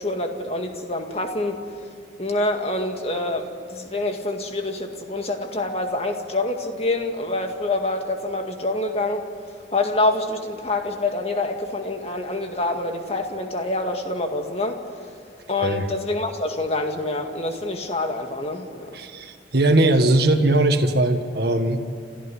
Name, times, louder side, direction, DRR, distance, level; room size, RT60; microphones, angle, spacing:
voice 1, 0.0-1.6 2.2-9.2 9.7-14.8 15.5-19.0, left 2 dB, 35° left, 4 dB, 2.0 m, -26 dB
voice 2, 18.9-21.8, right 2 dB, 55° right, 6 dB, 1.7 m, -20 dB
29.0 x 14.0 x 10.0 m, 2.5 s
head